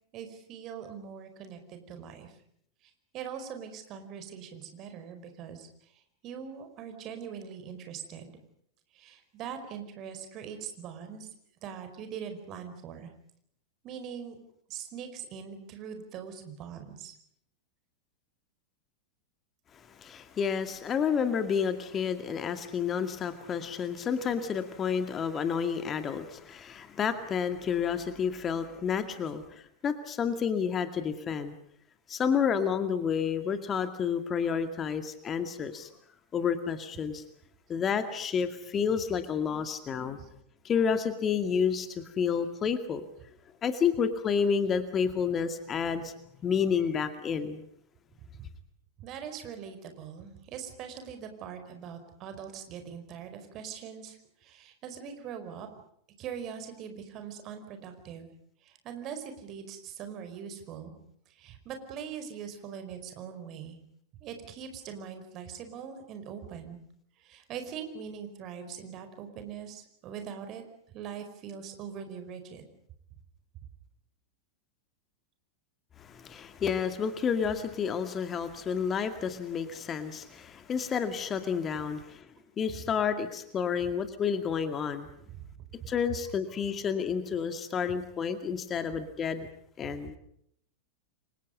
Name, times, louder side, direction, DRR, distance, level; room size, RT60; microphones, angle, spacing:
voice 1, 0.1-2.3 3.1-5.7 6.2-8.4 8.9-11.3 11.6-13.1 13.8-14.3 14.7-17.1 40.2-40.3 49.0-55.7 56.2-58.3 58.6-60.9 61.4-63.8 64.2-66.8 67.2-70.6 70.9-72.7 85.3-85.4 89.8-89.9, right 7 dB, 35° right, 7 dB, 5.0 m, -42 dB
voice 2, 20.0-29.4 29.8-31.6 32.1-35.9 36.3-37.2 37.7-40.2 40.6-43.1 43.6-46.1 46.4-47.6 76.0-82.3 82.6-85.1 85.9-89.5 89.8-90.2, left 7 dB, 25° left, 9 dB, 2.1 m, -30 dB
29.5 x 24.5 x 5.4 m, 0.70 s
figure-of-eight pair, 90°, 0 cm